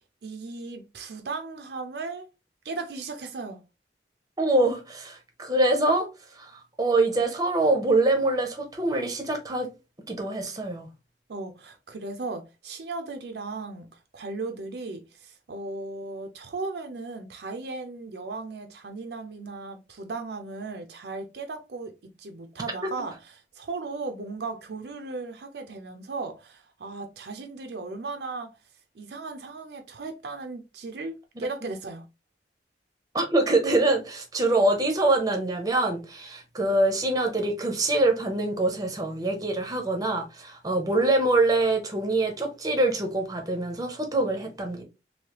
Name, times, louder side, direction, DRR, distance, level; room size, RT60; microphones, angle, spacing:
voice 1, 0.2-2.3 2.6-3.6 11.3-23.1 23.6-28.5 28.9-32.0, right 3 dB, 65° right, 0.5 m, -36 dB
voice 2, 4.4-6.1 6.4-9.7 10.1-10.9 22.8-22.9 33.1-44.8, right 2 dB, 20° right, 0.7 m, -24 dB
3.2 x 2.7 x 2.8 m
head